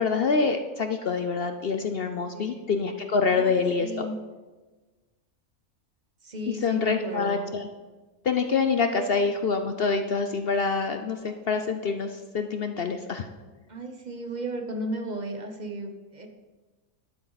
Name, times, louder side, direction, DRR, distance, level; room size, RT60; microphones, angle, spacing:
voice 1, 0.0-4.1 6.6-7.7 8.2-13.3, left 5 dB, 55° left, 7 dB, 0.7 m, -26 dB
voice 2, 2.3-2.7 3.3-4.1 6.2-7.5 8.9-9.1 13.7-16.3, right 1 dB, 35° right, 5 dB, 1.0 m, -35 dB
12.0 x 8.9 x 4.0 m, 1.3 s
omnidirectional pair, 1.6 m